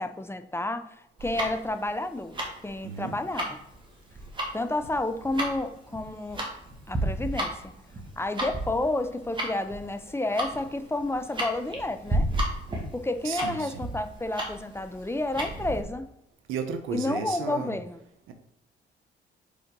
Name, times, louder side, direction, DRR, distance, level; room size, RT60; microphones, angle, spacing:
voice 1, 0.0-2.3 2.6-3.6 4.5-6.4 6.9-7.7 8.2-12.3 12.9-16.1 16.9-18.0, left 2 dB, 10° left, 9 dB, 0.6 m, -30 dB
Tick-tock, 1.2-15.8, right 1 dB, 25° right, 2.0 m, -33 dB
voice 2, 2.8-3.2 13.2-13.8 16.5-17.8 18.3-18.4, right 6 dB, 90° right, 7 dB, 1.0 m, -34 dB
5.3 x 4.3 x 5.2 m, 0.79 s
cardioid pair, 90°, 20 cm